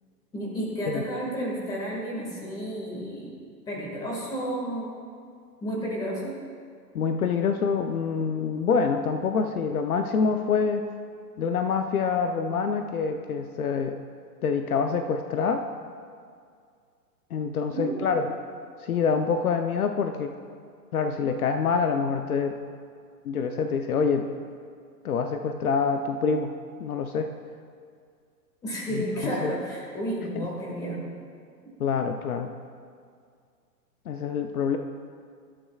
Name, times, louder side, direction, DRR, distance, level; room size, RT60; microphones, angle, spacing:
voice 1, 0.3-3.4 3.7-5.0 5.6-6.4 17.7-18.1 28.6-31.0, equal, 10° left, -4 dB, 1.9 m, -31 dB
voice 2, 6.9-10.9 11.4-14.0 14.4-15.6 17.3-18.3 18.8-20.3 20.9-22.6 23.2-24.3 25.0-26.5 26.8-27.3 28.9-29.5 30.4-30.5 31.8-32.5 34.1-34.8, left 5 dB, 60° left, 6 dB, 0.8 m, -26 dB
21.5 x 12.5 x 2.4 m, 2.2 s
hypercardioid pair, 165°, 50 cm